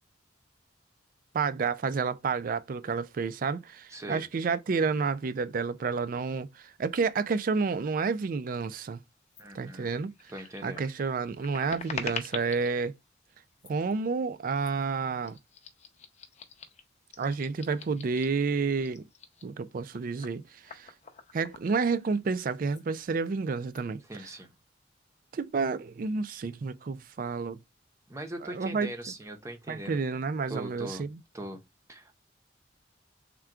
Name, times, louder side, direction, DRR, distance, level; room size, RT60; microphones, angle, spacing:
voice 1, 1.3-9.0 9.5-10.1 10.6-12.9 13.6-15.4 17.2-19.1 19.4-20.9 21.3-24.0 25.3-27.6 28.5-28.9 29.7-31.2, right 4 dB, 50° right, 0.4 m, -30 dB
voice 2, 3.9-4.3 9.4-10.0 10.3-10.9 24.0-24.5 28.1-30.0 30.5-31.1 31.3-31.6 31.9-32.1, right 1 dB, 15° right, 0.7 m, -41 dB
sound 1, 9.3-9.4 9.8-12.7 13.5-13.9 14.6-14.8 15.2-18.4 18.8-22.4 22.7-22.8 23.2-23.8, left 5 dB, 40° left, 0.6 m, -44 dB
3.7 x 2.3 x 4.4 m
head